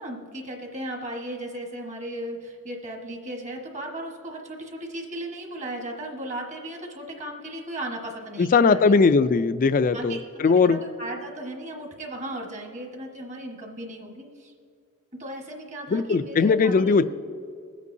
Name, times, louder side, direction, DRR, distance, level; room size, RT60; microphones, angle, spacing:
voice 1, 0.0-8.9 9.9-14.5 15.1-17.0, right 1 dB, 35° right, 1 dB, 1.4 m, -36 dB
voice 2, 8.4-10.8 15.9-17.0, left 4 dB, 40° left, 13 dB, 0.3 m, -19 dB
21.5 x 8.3 x 2.7 m, 2.2 s
head